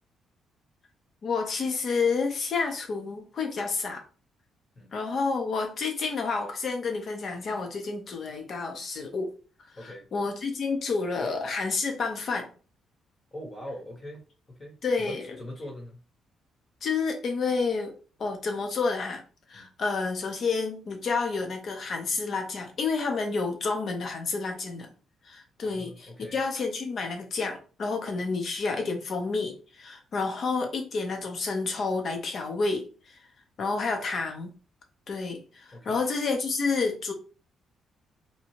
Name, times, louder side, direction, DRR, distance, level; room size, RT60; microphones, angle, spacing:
voice 1, 1.2-4.0 4.9-9.3 9.8-12.5 14.8-15.4 16.8-17.9 18.2-19.2 19.5-24.9 25.2-33.2 33.6-34.5 35.1-37.1, left 4 dB, 55° left, 4 dB, 0.8 m, -29 dB
voice 2, 9.7-10.0 13.3-14.2 14.5-16.0 19.5-19.7 25.8-26.4 35.7-36.0, left 1 dB, 30° left, 0 dB, 1.1 m, -42 dB
2.8 x 2.3 x 3.0 m, 0.36 s
cardioid pair, 90°, 0 cm